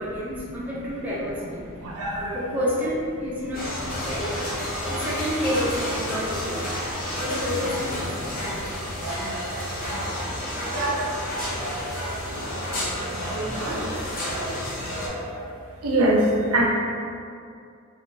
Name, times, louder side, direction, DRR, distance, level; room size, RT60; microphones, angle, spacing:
voice 1, 0.0-1.7 2.3-4.5 4.9-6.7 7.1-8.6, equal, 10° right, -8 dB, 0.4 m, -29 dB
voice 2, 2.0-2.4 9.0-9.4 10.7-11.0 13.3-13.8 14.3-14.4 15.0-15.2 15.8-16.7, right 1 dB, 80° right, -2 dB, 0.5 m, -23 dB
sound 1, 3.5-15.1, left 1 dB, 40° left, 0.6 m, -30 dB
2.6 x 2.2 x 2.6 m, 2.3 s
head